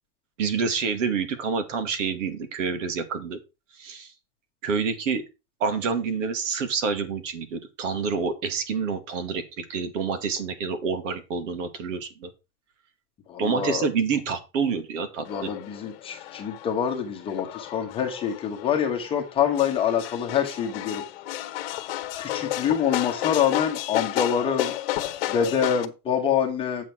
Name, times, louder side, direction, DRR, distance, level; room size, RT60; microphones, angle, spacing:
voice 1, 0.4-3.4 3.8-4.1 4.6-5.2 5.6-12.3 13.4-15.5, right 5 dB, 60° right, 10 dB, 2.3 m, -28 dB
voice 2, 13.3-13.9 15.3-21.0 22.2-24.7 25.3-26.8, left 8 dB, 15° left, 1 dB, 1.2 m, -26 dB
sound 1, 15.3-25.9, left 14 dB, 45° left, 1.2 m, -32 dB
8.4 x 7.4 x 4.6 m, 0.27 s
supercardioid pair, 175°, 41 cm